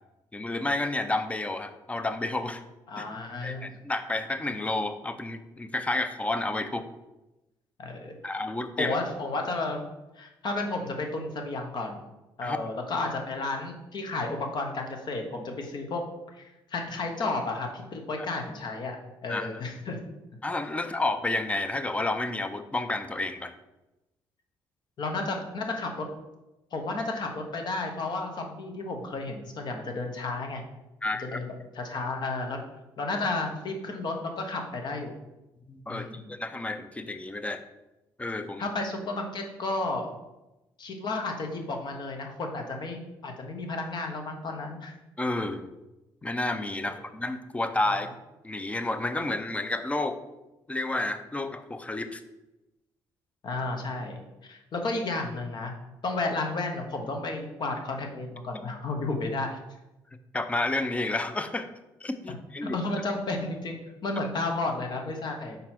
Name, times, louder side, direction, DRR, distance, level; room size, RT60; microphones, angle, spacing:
voice 1, 0.3-2.6 3.0-3.1 3.4-6.8 8.2-9.0 12.4-12.7 19.3-19.6 20.4-23.5 31.0-31.4 35.7-37.6 38.2-38.7 45.2-45.7 46.2-48.1 48.4-50.2 50.7-52.2 60.3-61.7 62.0-62.8, left 2 dB, 15° left, 9 dB, 0.6 m, -30 dB
voice 2, 2.9-3.7 7.8-8.4 8.8-9.8 10.2-12.0 12.4-16.0 16.4-19.0 19.2-20.0 25.0-26.1 26.7-30.6 31.2-32.6 33.0-35.1 35.9-36.3 38.6-40.1 40.8-44.9 53.4-54.2 54.5-55.7 56.0-59.6 62.6-63.7 64.0-65.6, left 2 dB, 55° left, 3 dB, 1.1 m, -32 dB
5.3 x 4.0 x 4.4 m, 0.99 s
supercardioid pair, 75°, 9 cm